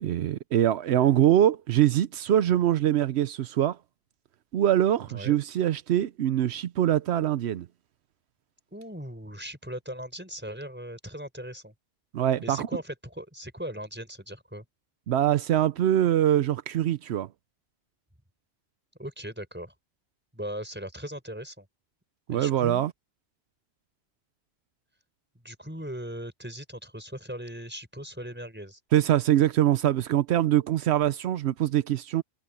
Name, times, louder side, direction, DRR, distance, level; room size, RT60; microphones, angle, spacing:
voice 1, 0.0-3.8 4.5-7.7 12.1-12.7 15.1-17.3 22.3-22.9 28.9-32.2, right 11 dB, 85° right, 0.9 m, -23 dB
voice 2, 5.0-5.4 8.7-11.7 12.4-14.6 19.0-19.7 20.3-21.7 22.3-22.8 25.4-28.8, equal, 10° right, 5.1 m, -39 dB
omnidirectional pair, 1.1 m